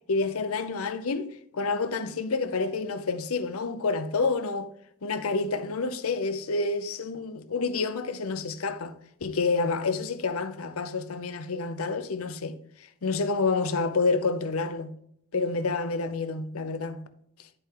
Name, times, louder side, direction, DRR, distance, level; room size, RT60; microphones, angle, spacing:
voice 1, 0.1-4.7 5.0-8.9 9.2-12.6 13.0-14.9 15.3-17.0, left 4 dB, 90° left, 0.7 m, -28 dB
11.0 x 4.3 x 3.7 m
head